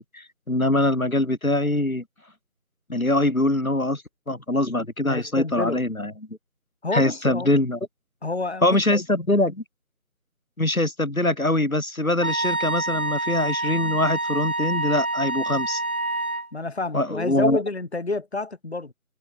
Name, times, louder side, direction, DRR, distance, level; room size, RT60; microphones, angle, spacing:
voice 1, 0.0-2.0 2.9-6.1 6.9-7.8 8.6-9.6 10.6-15.8 16.9-17.6, left 1 dB, 75° left, 5.2 m, -23 dB
voice 2, 5.1-5.8 6.8-7.5 8.2-9.0 16.5-18.9, left 3 dB, 50° left, 4.6 m, -29 dB
Wind instrument woodwind instrument, 12.2-16.5, right 2 dB, 85° right, 1.9 m, -27 dB
figure-of-eight pair, 165°, 42 cm